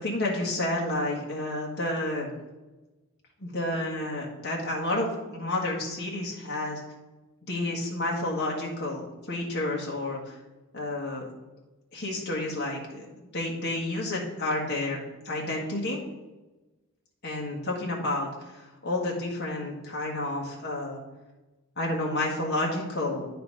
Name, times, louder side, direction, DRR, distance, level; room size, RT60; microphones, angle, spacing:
voice 1, 0.0-2.3 3.4-6.8 7.5-10.3 10.7-11.3 11.9-15.0 15.2-16.0 17.2-21.0 21.8-23.3, left 2 dB, 50° left, -2 dB, 1.5 m, -30 dB
9.8 x 4.2 x 5.3 m, 1.1 s
head